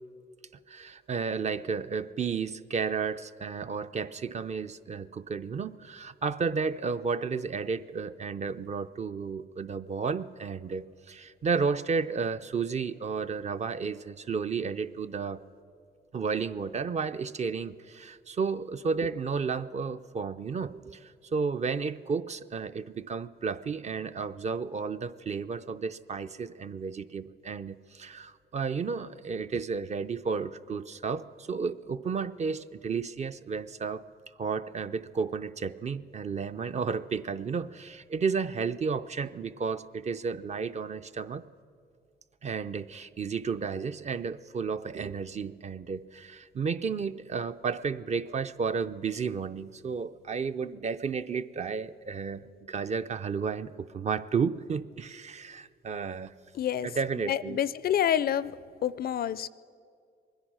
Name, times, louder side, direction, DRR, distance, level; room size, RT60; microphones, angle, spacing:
voice 1, 0.7-15.4 16.1-34.0 34.4-41.4 42.4-56.3 56.8-57.6, right 5 dB, 35° right, 11 dB, 0.5 m, -32 dB
voice 2, 56.6-56.9 57.3-58.5 58.8-59.5, left 10 dB, 50° left, 18 dB, 0.4 m, -27 dB
22.5 x 10.5 x 6.1 m, 2.2 s
cardioid pair, 90°, 20 cm